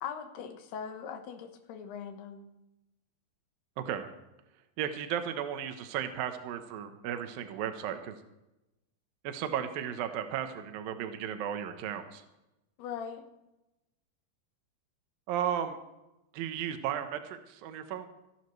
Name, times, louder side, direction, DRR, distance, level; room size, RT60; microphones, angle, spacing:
voice 1, 0.0-2.5 12.8-13.3, left 7 dB, 90° left, 6 dB, 3.3 m, -40 dB
voice 2, 3.8-4.1 4.8-8.2 9.2-12.2 15.3-15.8 16.3-18.1, right 9 dB, 70° right, 8 dB, 2.6 m, -35 dB
26.0 x 11.5 x 3.2 m, 0.94 s
omnidirectional pair, 4.5 m